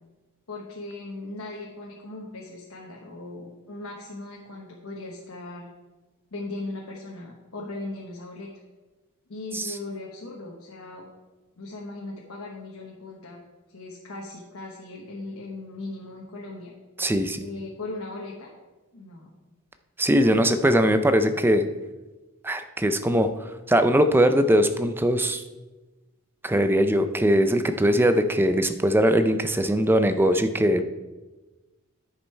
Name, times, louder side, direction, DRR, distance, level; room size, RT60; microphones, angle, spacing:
voice 1, 0.5-5.7 6.3-8.5 9.3-11.1 11.6-13.4 13.7-16.7 17.4-18.5 18.9-19.3, left 2 dB, 70° left, -2 dB, 1.1 m, -38 dB
voice 2, 17.0-17.4 20.0-21.6 22.4-25.4 26.4-30.8, equal, 10° right, 9 dB, 0.4 m, -21 dB
10.0 x 5.4 x 4.5 m, 1.2 s
head